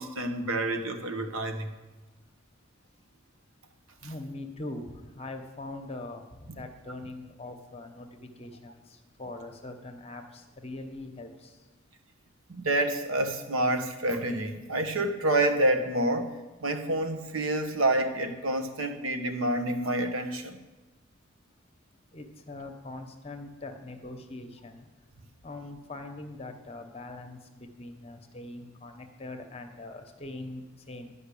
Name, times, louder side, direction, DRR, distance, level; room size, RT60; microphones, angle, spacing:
voice 1, 0.0-1.8 6.5-6.6 12.5-20.6, right 1 dB, 85° right, 1.1 m, -28 dB
voice 2, 4.0-11.6 22.1-24.9 25.4-31.1, left 2 dB, 30° left, 1.0 m, -42 dB
11.5 x 5.5 x 8.4 m
head